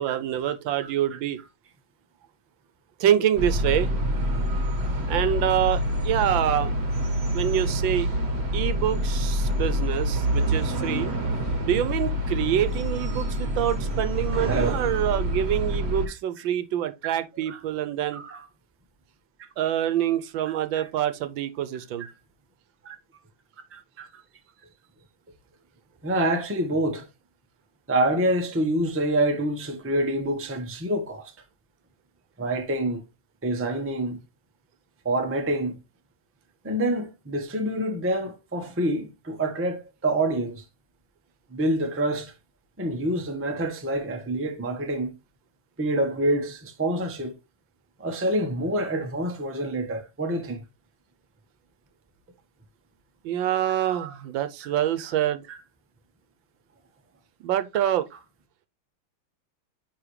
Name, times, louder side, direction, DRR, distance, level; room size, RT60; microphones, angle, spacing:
voice 1, 0.0-1.4 3.0-3.9 5.1-6.7 7.3-8.1 8.5-11.1 11.6-18.2 19.6-22.1 53.2-55.4 57.4-58.1, right 11 dB, 75° right, 1.4 m, -26 dB
voice 2, 0.8-1.2 14.5-14.8 17.0-17.1 17.5-17.6 18.1-18.4 20.5-20.9 22.0-22.1 22.8-23.0 23.7-24.1 26.0-27.1 27.9-31.3 32.4-33.0 33.4-34.2 35.0-35.8 36.6-40.6 41.5-42.3 42.8-45.1 45.8-47.3 48.0-50.6 53.7-54.1 54.6-54.7 55.5-55.6 57.7-57.8, right 1 dB, 10° right, 0.6 m, -27 dB
sound 1, 3.3-16.1, equal, 35° right, 1.4 m, -26 dB
9.7 x 3.7 x 3.1 m
omnidirectional pair, 2.2 m